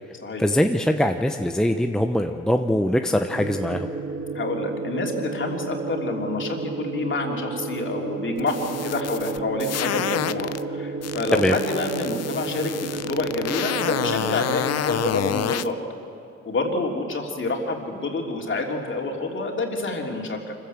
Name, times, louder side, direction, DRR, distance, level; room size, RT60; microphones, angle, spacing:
voice 1, 0.4-3.9 11.4-11.6, equal, ahead, 5 dB, 0.8 m, -22 dB
sound 1, 3.3-14.3, right 3 dB, 40° right, 1.9 m, -32 dB
voice 2, 4.3-15.8 16.4-20.5, left 2 dB, 40° left, 1 dB, 3.2 m, -28 dB
sound 2, 8.4-10.6 11.0-15.7, left 11 dB, 55° left, 0.7 m, -29 dB
25.5 x 15.0 x 8.1 m, 2.6 s
cardioid pair, 90°, 30 cm